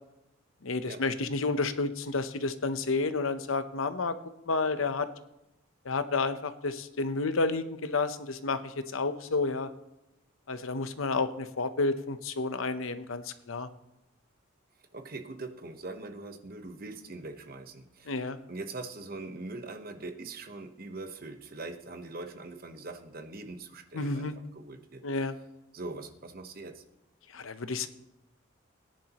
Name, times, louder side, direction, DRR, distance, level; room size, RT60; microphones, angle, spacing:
voice 1, 0.6-4.2 4.5-5.1 5.8-9.7 10.5-13.7 18.1-18.4 23.9-24.3 25.0-25.3 27.3-27.9, left 3 dB, 85° left, 11 dB, 0.8 m, -30 dB
voice 2, 14.9-25.0 25.7-26.8, right 2 dB, 45° right, 7 dB, 1.0 m, -42 dB
18.0 x 10.5 x 3.0 m, 0.91 s
head